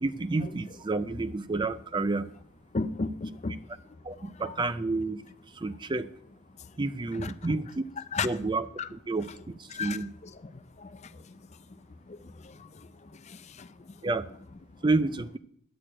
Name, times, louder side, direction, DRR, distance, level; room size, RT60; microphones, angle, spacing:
voice 1, 0.0-2.3 4.0-5.2 5.6-6.1 6.8-7.8 8.2-9.3 9.8-10.1 14.0-14.3 14.8-15.4, right 3 dB, 20° right, 0.4 m, -29 dB
voice 2, 2.7-3.5 4.4-4.5 7.2-7.3 8.1-8.3 8.8-8.9 9.7-10.3 10.8-10.9 13.3-13.7, left 4 dB, 30° left, 0.5 m, -33 dB
10.0 x 6.5 x 8.8 m
head